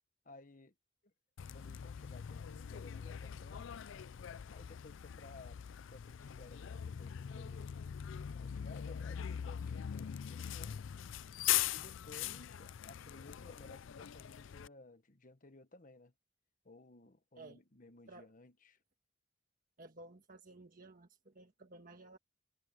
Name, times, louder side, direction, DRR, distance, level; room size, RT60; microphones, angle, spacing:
voice 1, 0.2-0.7 1.5-3.7 4.5-7.7 8.4-10.8 11.7-16.1 16.6-18.8, left 2 dB, 40° left, 1.2 m, -57 dB
Bus, 1.4-14.7, left 10 dB, 70° left, 0.4 m, -41 dB
voice 2, 19.8-22.2, right 2 dB, 45° right, 1.5 m, -55 dB
head